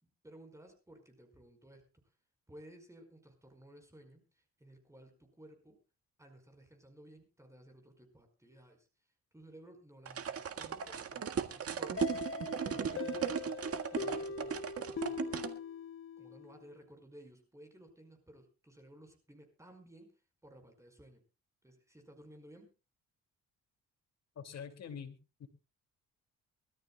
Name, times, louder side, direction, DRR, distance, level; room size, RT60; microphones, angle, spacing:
voice 1, 0.0-1.9 2.5-5.8 6.2-8.9 9.3-12.1 12.5-13.4 13.8-15.5 16.2-20.1 20.4-21.2 21.6-22.7, right 1 dB, 10° right, 5 dB, 5.0 m, -57 dB
sound 1, 10.1-15.5, right 7 dB, 50° right, 1.8 m, -37 dB
sound 2, 12.0-16.6, left 5 dB, 45° left, 1.2 m, -42 dB
voice 2, 24.4-25.1 25.4-25.5, left 7 dB, 60° left, 7 dB, 2.5 m, -44 dB
24.0 x 13.5 x 2.3 m, 0.31 s
cardioid pair, 90°, 30 cm